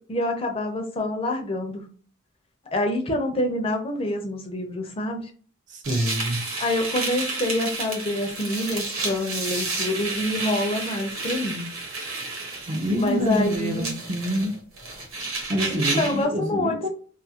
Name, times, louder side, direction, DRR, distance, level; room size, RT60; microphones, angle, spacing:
voice 1, 0.1-1.9 2.7-5.3 6.6-11.7 13.0-13.9 15.7-16.9, left 1 dB, 25° left, 0.5 m, -26 dB
voice 2, 5.7-6.4 12.7-14.5 15.5-16.9, equal, 35° right, 0.5 m, -26 dB
sound 1, 5.8-16.2, right 3 dB, 90° right, 1.2 m, -31 dB
2.6 x 2.4 x 2.7 m
head